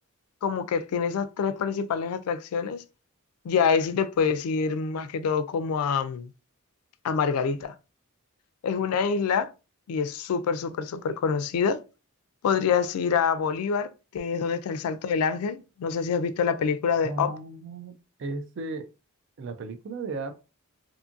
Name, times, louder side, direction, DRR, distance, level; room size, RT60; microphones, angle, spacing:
voice 1, 0.4-2.8 3.4-6.3 7.0-7.7 8.6-9.5 9.9-11.8 12.4-17.3, left 6 dB, 90° left, 0.3 m, -26 dB
voice 2, 17.0-18.9 19.4-20.4, right 3 dB, 55° right, 0.4 m, -35 dB
2.6 x 2.5 x 2.4 m
head